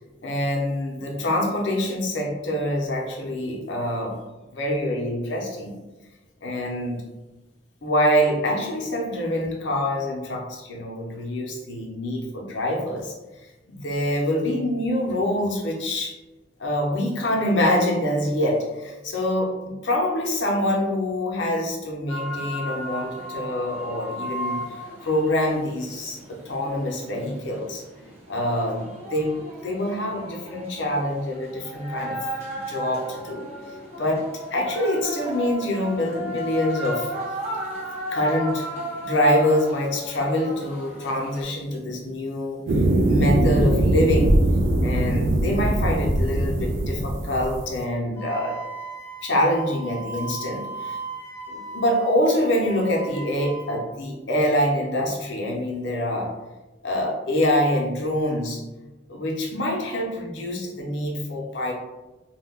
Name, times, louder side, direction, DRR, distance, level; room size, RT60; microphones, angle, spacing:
voice 1, 0.2-4.2 4.5-5.7 6.4-7.0 7.8-13.1 13.7-16.1 16.6-27.8 28.3-28.8 29.1-32.2 32.7-33.5 34.0-37.1 38.1-38.6 39.0-42.6 43.0-44.4 44.8-48.6 49.2-51.0 51.5-56.3 56.8-58.6 59.1-61.7, left 1 dB, 70° left, -1 dB, 0.6 m, -25 dB
sound 1, 22.1-41.4, equal, 35° right, 0.8 m, -35 dB
sound 2, 42.7-47.7, right 1 dB, 90° right, 0.4 m, -21 dB
Wind instrument woodwind instrument, 48.2-53.8, right 4 dB, 15° left, 0.5 m, -37 dB
2.2 x 2.1 x 3.4 m, 1.1 s
head